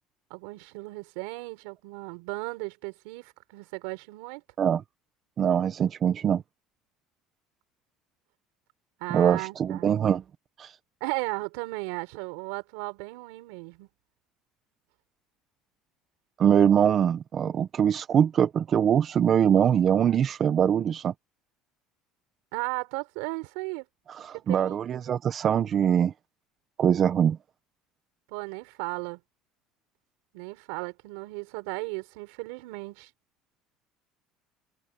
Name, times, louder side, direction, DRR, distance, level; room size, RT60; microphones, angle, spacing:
voice 1, 0.3-4.4 9.0-9.9 11.0-13.9 22.5-23.9 24.2-24.8 28.3-29.2 30.3-33.1, right 26 dB, 85° right, 4.4 m, -35 dB
voice 2, 5.4-6.4 9.1-10.2 10.6-10.7 16.4-21.1 24.1-26.1 26.8-27.4, right 8 dB, 40° right, 1.1 m, -23 dB
cardioid pair, 120°, 0 cm